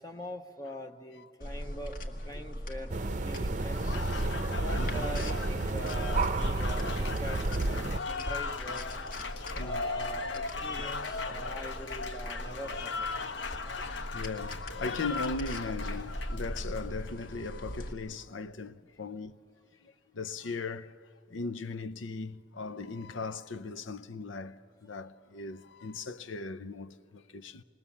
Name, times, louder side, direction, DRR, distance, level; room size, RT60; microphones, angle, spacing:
voice 1, 0.0-4.0 4.6-9.0 9.6-13.1, equal, 20° left, 0.7 m, -43 dB
sound 1, 1.4-17.9, equal, 45° left, 1.5 m, -41 dB
sound 2, 2.9-8.0, right 2 dB, 40° right, 0.6 m, -31 dB
Applause, 3.6-17.3, left 4 dB, 70° left, 1.0 m, -38 dB
voice 2, 9.3-9.8 13.2-13.6 14.0-19.3 19.8-27.6, left 3 dB, 85° left, 0.7 m, -39 dB
27.5 x 20.5 x 7.2 m
head